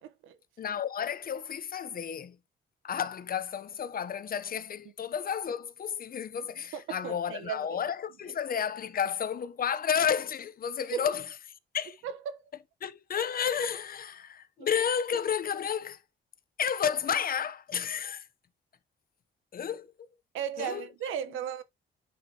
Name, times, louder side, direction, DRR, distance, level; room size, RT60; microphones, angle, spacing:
voice 1, 0.0-0.4 6.7-7.8 10.9-11.1 12.0-12.4 14.6-14.7 20.3-21.6, right 8 dB, 85° right, 1.1 m, -36 dB
voice 2, 0.6-2.4 2.8-11.3 11.7-12.0 12.8-16.0 16.6-18.3 19.5-19.9 20.6-20.9, left 8 dB, 45° left, 0.9 m, -31 dB
9.2 x 5.2 x 2.9 m
cardioid pair, 90°, 20 cm